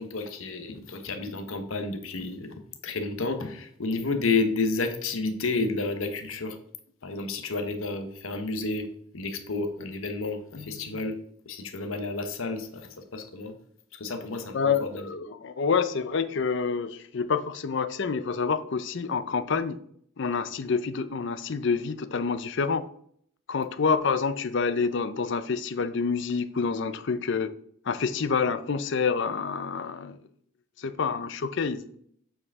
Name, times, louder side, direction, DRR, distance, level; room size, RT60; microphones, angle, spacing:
voice 1, 0.0-6.6 7.0-8.9 9.1-13.5 13.9-15.1, left 3 dB, 75° left, 8 dB, 0.9 m, -31 dB
voice 2, 14.5-19.8 20.2-22.8 23.5-27.5 27.9-30.2 30.8-31.9, left 5 dB, 55° left, 12 dB, 0.5 m, -27 dB
7.8 x 4.8 x 3.6 m, 0.64 s
head